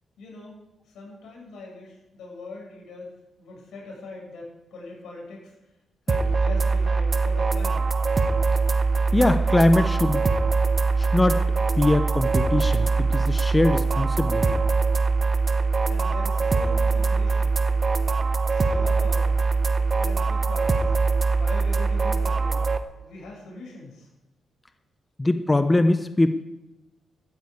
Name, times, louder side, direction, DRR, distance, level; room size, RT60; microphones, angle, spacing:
voice 1, 0.2-0.6 0.9-3.1 3.4-5.5 6.1-7.9 15.9-17.6 18.5-19.4 20.0-20.9 21.3-22.7 23.0-24.1, left 2 dB, 80° left, -2 dB, 7.1 m, -41 dB
sound 1, 6.1-22.8, right 4 dB, 25° right, 0.8 m, -22 dB
voice 2, 9.1-10.3 11.0-11.4 11.8-14.6 25.2-26.3, left 2 dB, 10° left, 9 dB, 0.6 m, -22 dB
12.5 x 9.8 x 8.4 m, 1.0 s
wide cardioid pair, 165°, 0 cm